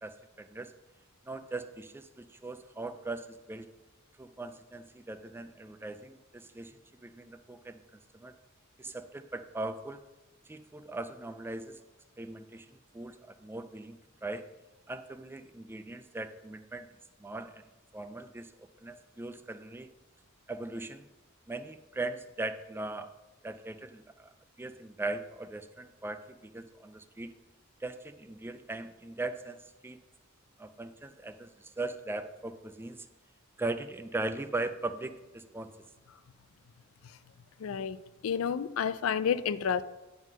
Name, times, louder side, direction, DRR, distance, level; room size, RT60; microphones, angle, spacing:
voice 1, 0.0-0.7 1.2-3.7 4.2-7.8 8.1-8.3 8.8-10.0 10.4-11.8 12.2-14.4 14.9-16.9 17.2-17.6 17.9-19.9 20.5-21.0 21.5-23.1 23.4-24.3 24.6-27.3 27.8-30.0 30.6-33.1 33.6-35.7, right 2 dB, 10° right, 10 dB, 0.3 m, -39 dB
voice 2, 37.6-38.0 38.2-39.8, left 7 dB, 85° left, 15 dB, 0.4 m, -30 dB
9.1 x 3.8 x 6.1 m, 1.1 s
head